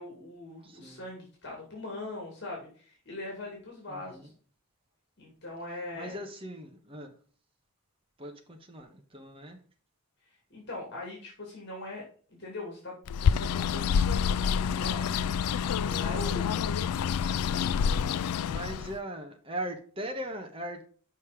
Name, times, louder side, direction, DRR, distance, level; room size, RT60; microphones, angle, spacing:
voice 1, 0.0-4.3 5.2-6.2 10.5-15.1 15.8-16.8, left 2 dB, 50° left, -1 dB, 2.7 m, -41 dB
voice 2, 0.6-1.1 3.9-4.3 5.9-7.1 8.2-9.6 16.7-16.8 18.5-20.9, right 1 dB, 25° right, 4 dB, 1.2 m, -39 dB
Bird, 13.1-19.0, left 7 dB, 90° left, 0.4 m, -28 dB
6.6 x 5.4 x 5.1 m, 0.43 s
head